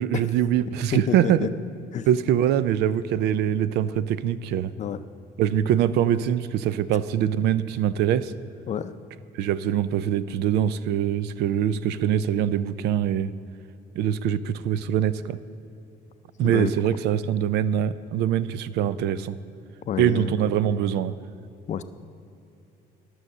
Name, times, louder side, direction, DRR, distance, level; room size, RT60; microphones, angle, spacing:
voice 1, 0.0-1.5 2.1-4.7 5.4-8.3 9.3-13.3 14.0-15.4 16.4-19.3 20.0-21.1, right 10 dB, 80° right, 16 dB, 0.4 m, -23 dB
voice 2, 0.9-1.5 1.9-2.1 4.8-5.0 8.7-8.9 16.4-16.7 19.9-20.4 21.7-21.8, left 8 dB, 45° left, 12 dB, 0.5 m, -28 dB
12.5 x 6.3 x 6.5 m, 2.7 s
cardioid pair, 110°, 17 cm